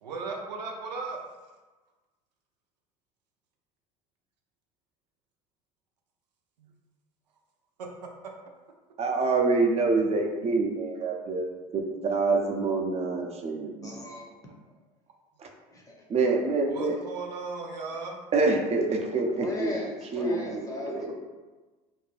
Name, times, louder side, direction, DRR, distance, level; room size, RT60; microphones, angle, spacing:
voice 1, 0.0-1.2 6.6-6.7 7.8-8.1 16.7-18.2, right 4 dB, 85° right, 1 dB, 0.4 m, -36 dB
voice 2, 9.0-11.5 12.0-13.9 15.4-15.5 16.1-17.0 18.3-19.8 20.1-21.1, right 3 dB, 30° right, 2 dB, 0.5 m, -26 dB
voice 3, 13.8-14.2 15.7-15.8 19.4-21.1, left 2 dB, 15° left, -2 dB, 0.7 m, -37 dB
2.6 x 2.1 x 3.1 m, 1.2 s
hypercardioid pair, 75°, 21 cm